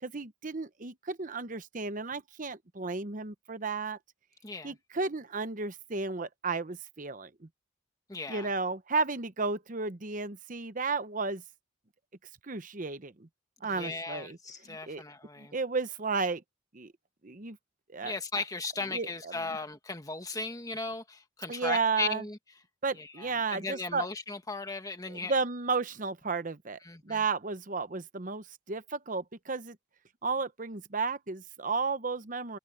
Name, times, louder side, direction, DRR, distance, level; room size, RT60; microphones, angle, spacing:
voice 1, 0.0-4.0 4.6-7.5 8.3-11.4 12.4-13.3 13.6-14.4 14.7-15.0 15.4-16.4 16.7-16.9 17.2-17.6 17.9-18.1 18.9-19.3 21.5-22.2 22.8-24.1 25.1-29.8 30.2-32.6, right 4 dB, 40° right, 0.9 m, -33 dB
voice 2, 4.4-4.8 8.1-8.5 13.7-15.5 18.0-22.4 22.9-25.3 26.8-27.2, left 3 dB, 15° left, 1.5 m, -37 dB
head